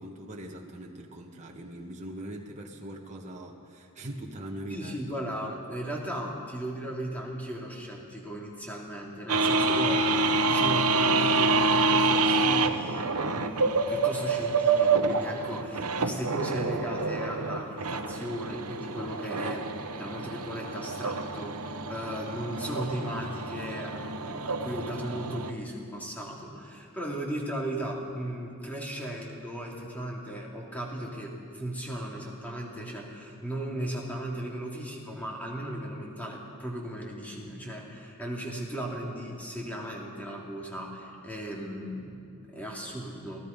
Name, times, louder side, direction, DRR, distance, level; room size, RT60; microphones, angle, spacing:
voice 1, 0.0-5.0, right 1 dB, 30° right, -1 dB, 1.6 m, -41 dB
voice 2, 4.7-43.4, right 1 dB, 5° left, -2 dB, 3.2 m, -36 dB
sound 1, 9.3-25.5, right 3 dB, 80° right, 1.0 m, -27 dB
27.5 x 17.5 x 5.4 m, 2.5 s
head